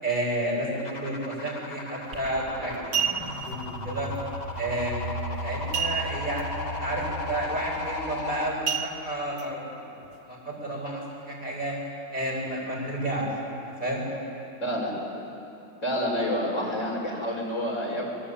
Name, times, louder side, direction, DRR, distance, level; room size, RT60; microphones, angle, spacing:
voice 1, 0.0-4.1 4.6-5.1 5.4-9.9 10.2-11.7 12.1-13.2 13.8-14.1, right 1 dB, 30° right, -3 dB, 7.1 m, -31 dB
sound 1, 0.8-8.5, left 2 dB, 25° left, 1.8 m, -37 dB
sound 2, 2.1-2.3 2.7-3.5 5.7-6.4 6.7-6.8 7.3-7.6 8.7-9.4 10.0-10.1, right 8 dB, 55° right, 1.4 m, -29 dB
sound 3, 2.1-8.6, right 1 dB, 85° right, 5.8 m, -38 dB
voice 2, 14.6-14.9 15.8-18.1, equal, 45° left, -2 dB, 5.9 m, -28 dB
26.5 x 21.0 x 8.8 m, 2.7 s
omnidirectional pair, 1.7 m